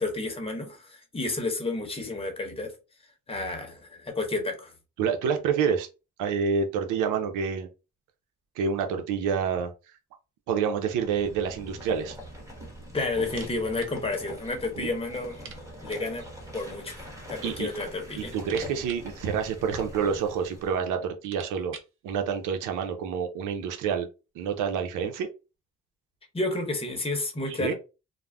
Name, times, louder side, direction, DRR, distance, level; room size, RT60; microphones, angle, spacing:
voice 1, 0.0-2.7 3.3-4.7 12.9-16.2 16.5-17.0 17.3-18.3 26.3-27.7, left 2 dB, 20° left, 0.9 m, -31 dB
voice 2, 5.0-5.9 6.2-7.7 8.6-9.7 10.5-12.2 14.8-14.9 17.4-17.7 18.2-21.8 22.0-24.1 24.4-25.3 27.5-27.7, right 6 dB, 85° right, 0.5 m, -28 dB
sound 1, 10.9-20.8, equal, 10° right, 1.1 m, -43 dB
sound 2, 13.2-14.0 14.3-14.4 14.7-14.8 15.3-16.2 17.1-17.7 18.0-20.0 20.7-20.8 21.1-22.0, right 6 dB, 45° right, 0.6 m, -48 dB
2.4 x 2.0 x 3.3 m
cardioid pair, 90°, 30 cm